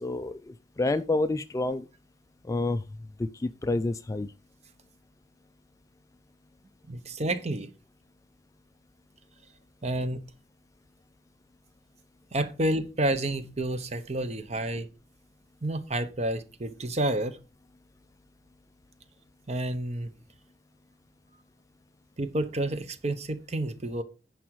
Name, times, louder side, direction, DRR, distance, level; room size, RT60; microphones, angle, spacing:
voice 1, 0.0-1.8 2.5-2.8 3.2-4.3, left 2 dB, 20° left, 0.3 m, -28 dB
voice 2, 6.9-7.7 9.8-10.2 12.3-14.9 15.6-17.4 19.5-20.1 22.2-24.0, right 1 dB, 35° right, 0.8 m, -29 dB
10.0 x 4.9 x 4.6 m
head